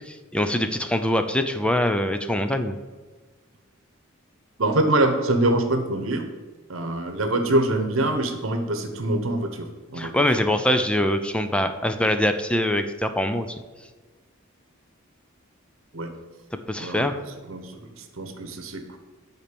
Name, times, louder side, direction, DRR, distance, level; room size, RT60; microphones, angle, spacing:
voice 1, 0.1-2.7 10.0-13.6 16.7-17.2, left 1 dB, 5° left, 8 dB, 0.5 m, -23 dB
voice 2, 4.6-6.3 6.7-10.1 15.9-16.1 16.8-17.1 17.5-19.0, right 1 dB, 70° right, 6 dB, 1.1 m, -24 dB
8.5 x 4.4 x 6.9 m, 1.3 s
head